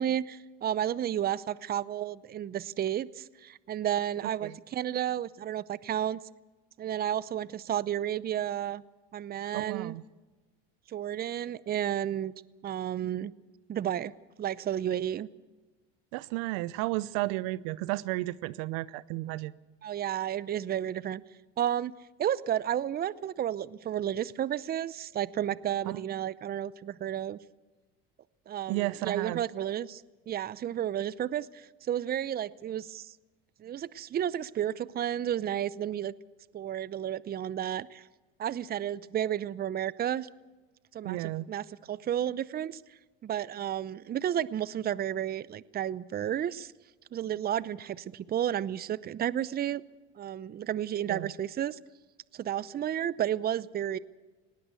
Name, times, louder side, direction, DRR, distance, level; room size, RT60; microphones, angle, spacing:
voice 1, 0.0-6.2 6.8-8.8 9.1-10.0 10.9-12.3 12.6-13.3 13.7-14.1 14.4-15.3 19.8-21.2 21.6-21.9 22.2-27.4 28.5-33.2 33.6-36.1 36.5-38.1 38.4-40.3 40.9-42.8 43.2-46.7 47.1-49.8 50.2-51.8 52.3-54.0, right 10 dB, 35° right, 19 dB, 0.7 m, -32 dB
voice 2, 9.5-10.0 16.1-19.5 25.9-26.0 28.7-29.4 41.0-41.5 51.1-51.3, right 19 dB, 75° right, 19 dB, 0.7 m, -33 dB
19.5 x 17.5 x 8.2 m, 1.2 s
supercardioid pair, 95°, 29 cm